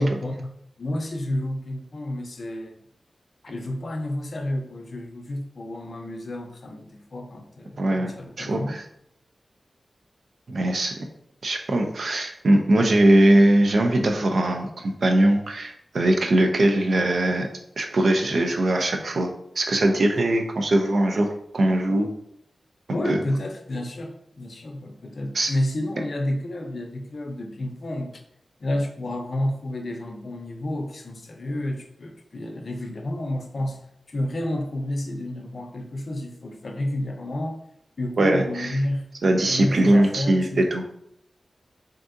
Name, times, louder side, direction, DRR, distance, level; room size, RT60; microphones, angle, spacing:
voice 1, 0.0-2.8 3.4-8.8 22.9-28.2 28.6-37.6 38.0-39.1 39.5-40.6, left 1 dB, 60° left, 4 dB, 0.5 m, -30 dB
voice 2, 7.8-8.8 10.5-10.9 11.4-17.5 17.8-22.1 23.1-23.2 25.3-25.5 38.2-38.7 39.2-40.8, right 1 dB, 70° right, 4 dB, 0.4 m, -21 dB
3.5 x 2.6 x 2.5 m, 0.75 s
cardioid pair, 60°, 0 cm